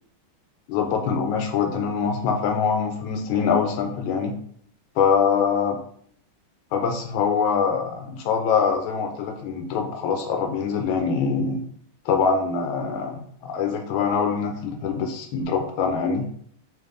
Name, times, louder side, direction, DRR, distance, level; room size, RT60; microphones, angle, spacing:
voice 1, 0.7-4.3 5.0-5.8 6.7-11.6 12.0-16.2, left 6 dB, 90° left, 3 dB, 1.5 m, -24 dB
5.1 x 2.6 x 3.8 m, 0.62 s
omnidirectional pair, 2.2 m